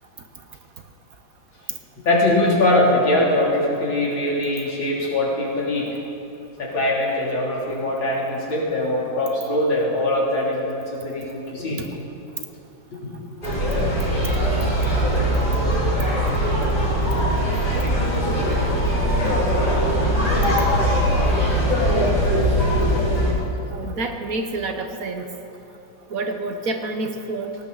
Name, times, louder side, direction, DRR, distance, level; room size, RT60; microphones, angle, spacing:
voice 1, 2.1-5.9 6.6-11.8 13.0-13.1 15.4-15.5 18.0-18.1 18.5-18.6 19.0-19.1 21.0-21.1, left 1 dB, 90° left, -4 dB, 3.8 m, -22 dB
sound 1, 13.4-23.3, equal, 25° left, 4.8 m, -20 dB
voice 2, 23.7-25.3 26.1-27.6, right 2 dB, 55° right, 5 dB, 1.2 m, -28 dB
18.5 x 18.5 x 4.0 m, 2.9 s
omnidirectional pair, 2.1 m